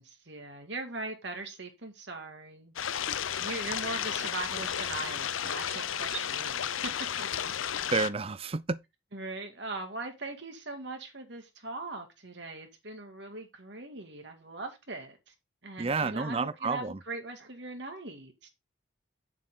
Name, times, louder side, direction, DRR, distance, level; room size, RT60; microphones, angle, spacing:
voice 1, 0.0-2.7 3.4-6.7 7.2-7.5 9.1-15.3 15.6-18.5, right 2 dB, 60° right, 2.1 m, -40 dB
sound 1, 2.8-8.1, left 9 dB, 90° left, 0.7 m, -33 dB
voice 2, 7.9-8.8 15.8-17.0, right 4 dB, 30° right, 0.5 m, -30 dB
8.8 x 7.3 x 3.8 m
head